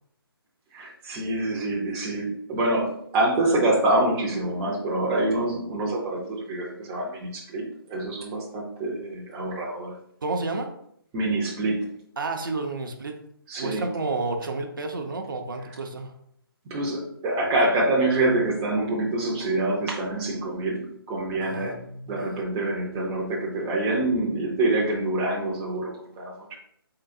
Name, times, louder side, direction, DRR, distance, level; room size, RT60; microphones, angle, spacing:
voice 1, 0.7-7.6 7.9-9.9 11.1-11.9 13.5-13.8 16.6-21.8 22.1-26.6, right 2 dB, 15° right, -3 dB, 0.6 m, -26 dB
voice 2, 10.2-10.7 12.2-13.2 13.6-16.1 21.4-22.4, right 3 dB, 55° right, 4 dB, 0.6 m, -31 dB
3.8 x 3.8 x 2.5 m, 0.69 s
figure-of-eight pair, 145°, 13 cm